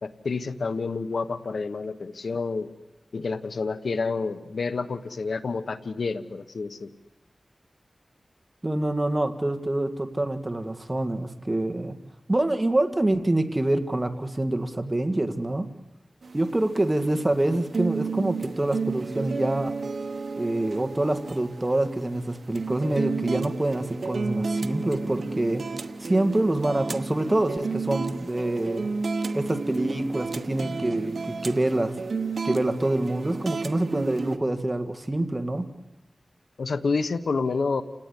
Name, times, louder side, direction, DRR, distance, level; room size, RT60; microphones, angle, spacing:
voice 1, 0.0-2.7 3.1-6.9 36.6-37.8, left 4 dB, 85° left, 11 dB, 1.2 m, -29 dB
voice 2, 8.6-12.0 12.3-15.7 16.3-19.8 20.4-25.7 26.0-28.9 29.3-31.2 31.4-32.0 32.4-35.7, right 1 dB, 25° right, 8 dB, 2.0 m, -26 dB
sound 1, 16.2-34.4, right 4 dB, 70° right, 1.0 m, -32 dB
29.5 x 18.0 x 10.0 m, 1.0 s
wide cardioid pair, 65°, 0 cm